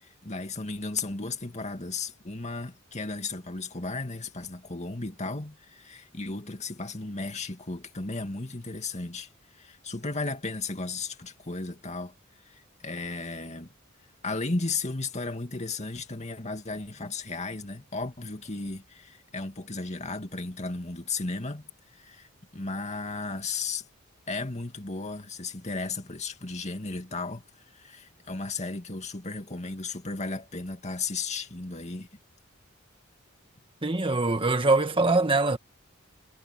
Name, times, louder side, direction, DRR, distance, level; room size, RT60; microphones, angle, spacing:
voice 1, 0.0-12.1 12.5-13.7 14.2-22.3 22.5-23.8 24.3-27.4 27.7-32.2, left 3 dB, 35° left, 2.3 m, -35 dB
voice 2, 33.8-35.6, right 3 dB, 25° right, 1.8 m, -23 dB
head